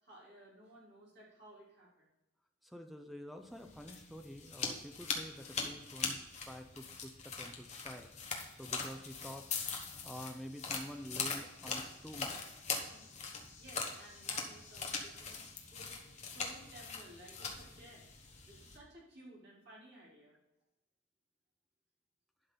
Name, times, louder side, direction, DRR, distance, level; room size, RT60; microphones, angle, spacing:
voice 1, 0.0-2.1 12.8-18.1 18.4-20.4, right 1 dB, 50° right, -6 dB, 3.5 m, -57 dB
voice 2, 2.6-8.1 8.6-9.5 10.0-12.5, equal, ahead, 6 dB, 0.6 m, -48 dB
sound 1, 3.6-18.8, left 5 dB, 35° left, 1.1 m, -42 dB
11.5 x 5.5 x 4.0 m, 1.0 s
head